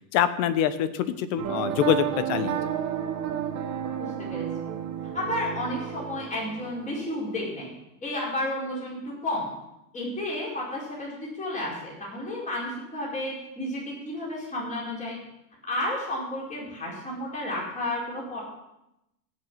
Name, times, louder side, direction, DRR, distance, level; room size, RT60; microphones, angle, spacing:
voice 1, 0.1-2.8, left 10 dB, 55° left, 13 dB, 1.2 m, -25 dB
sound 1, 1.4-7.7, right 9 dB, 35° right, 1.6 m, -32 dB
voice 2, 4.0-4.5 5.1-7.7 8.0-9.5 9.9-15.2 15.7-18.4, left 1 dB, 15° left, -4 dB, 4.8 m, -32 dB
16.5 x 6.3 x 7.6 m, 0.88 s
supercardioid pair, 135°, 48 cm